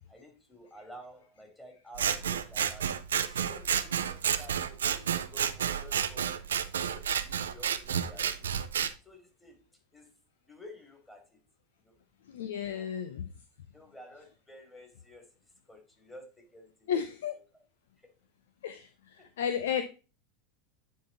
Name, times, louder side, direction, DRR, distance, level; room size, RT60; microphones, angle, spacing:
voice 1, 0.0-2.9 3.2-6.3 6.7-8.7 9.0-9.6 9.9-10.1 10.5-11.4 11.8-12.0 12.6-13.0 13.7-15.4 15.7-16.9 18.0-18.1 19.2-19.3, equal, 10° left, 2.9 m, -52 dB
Scissors, 2.0-8.9, right 8 dB, 75° right, 0.6 m, -30 dB
voice 2, 12.2-13.3 16.9-17.3 18.6-19.8, left 8 dB, 70° left, 0.6 m, -33 dB
9.4 x 4.0 x 3.9 m
figure-of-eight pair, 85°, 0 cm